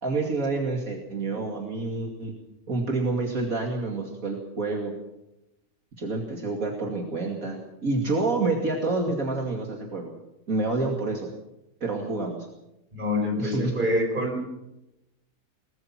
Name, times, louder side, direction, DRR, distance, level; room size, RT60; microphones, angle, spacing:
voice 1, 0.0-2.4 2.7-4.9 6.0-10.1 10.5-11.3 11.8-12.5 13.4-13.7, right 3 dB, 65° right, 0 dB, 3.0 m, -28 dB
voice 2, 12.9-14.4, left 1 dB, 30° right, 3 dB, 5.4 m, -26 dB
22.5 x 20.5 x 5.9 m, 0.91 s
omnidirectional pair, 1.6 m